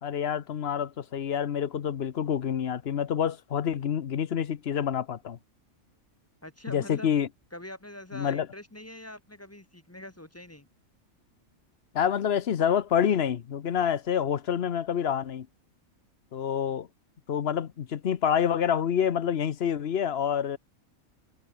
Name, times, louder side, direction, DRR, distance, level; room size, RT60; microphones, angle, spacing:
voice 1, 0.0-5.4 6.7-7.3 8.1-8.5 11.9-15.5 16.3-16.9 17.3-20.6, left 8 dB, 50° left, 1.0 m, -27 dB
voice 2, 6.4-7.1 7.5-10.7, left 1 dB, 10° left, 1.0 m, -44 dB
omnidirectional pair, 1.5 m